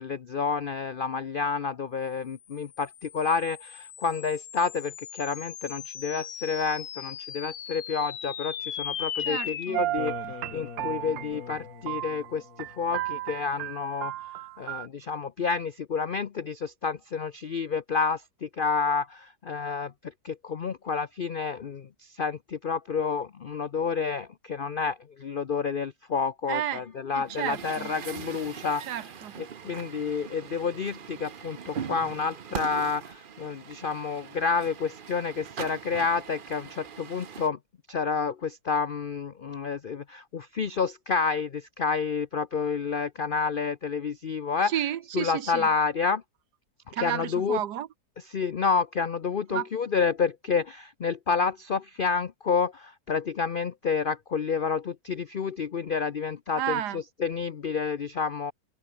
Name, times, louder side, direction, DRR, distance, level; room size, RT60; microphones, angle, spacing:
voice 1, 0.0-29.0 29.4-37.6 37.9-44.7 45.1-46.2 47.0-47.6 48.3-58.5, left 5 dB, 75° left, 0.4 m, -29 dB
sound 1, 2.5-13.2, left 9 dB, 60° left, 1.5 m, -39 dB
voice 2, 9.2-9.8 26.5-26.8 27.1-27.9 28.9-29.4 44.6-45.7 46.9-47.9 49.5-49.7 56.6-57.0, right 11 dB, 70° right, 1.4 m, -32 dB
sound 2, 9.7-12.3 12.6-14.9, right 16 dB, 90° right, 1.4 m, -34 dB
Truck, 27.3-37.5, right 7 dB, 50° right, 0.6 m, -41 dB
open air
omnidirectional pair, 1.9 m